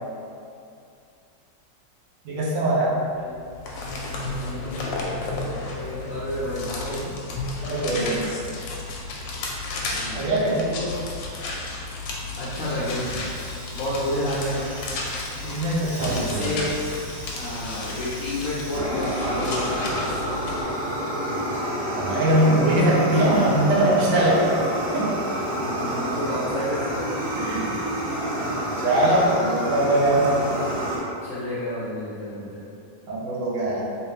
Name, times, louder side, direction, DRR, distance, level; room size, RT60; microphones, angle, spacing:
voice 1, 2.2-3.0 7.6-8.2 10.1-10.7 15.4-16.6 21.9-24.5 24.9-25.1 27.4-27.6 28.8-30.3 33.1-33.8, right 1 dB, 80° right, -5 dB, 1.4 m, -21 dB
sound 1, 3.3-20.6, left 3 dB, 85° left, 1.3 m, -33 dB
voice 2, 4.2-4.7 5.4-7.1 7.9-8.0 9.9-11.0 12.4-13.2 13.7-14.7 16.2-16.7 17.3-20.4 24.4-24.5 25.6-27.1 31.2-32.6, left 1 dB, 70° left, -9 dB, 0.8 m, -31 dB
Fire, 12.3-31.0, right 1 dB, 60° right, 1.5 m, -30 dB
3.3 x 3.2 x 3.2 m, 2.4 s
omnidirectional pair, 2.0 m